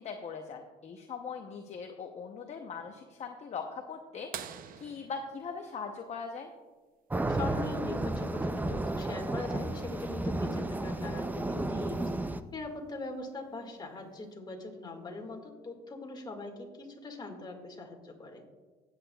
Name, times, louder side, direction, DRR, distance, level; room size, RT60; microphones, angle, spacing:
voice 1, 0.0-6.5, left 5 dB, 40° left, 4 dB, 0.8 m, -41 dB
sound 1, 4.3-6.8 8.7-8.8 11.0-11.1 12.8-13.1 13.9-14.0, right 9 dB, 55° right, 0.6 m, -45 dB
sound 2, 7.1-12.4, right 2 dB, 10° right, 0.4 m, -33 dB
voice 2, 7.3-18.4, left 2 dB, 25° left, 2 dB, 1.8 m, -41 dB
15.5 x 8.2 x 2.3 m, 1.3 s
cardioid pair, 110°, 17 cm